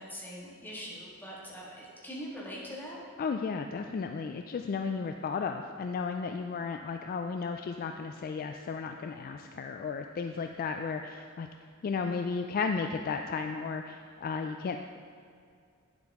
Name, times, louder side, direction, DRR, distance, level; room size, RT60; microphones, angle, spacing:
voice 1, 0.0-3.0, equal, 10° left, -6 dB, 1.8 m, -42 dB
voice 2, 3.2-11.5 11.8-14.8, left 5 dB, 40° left, 5 dB, 0.3 m, -34 dB
9.0 x 7.7 x 3.6 m, 2.2 s
head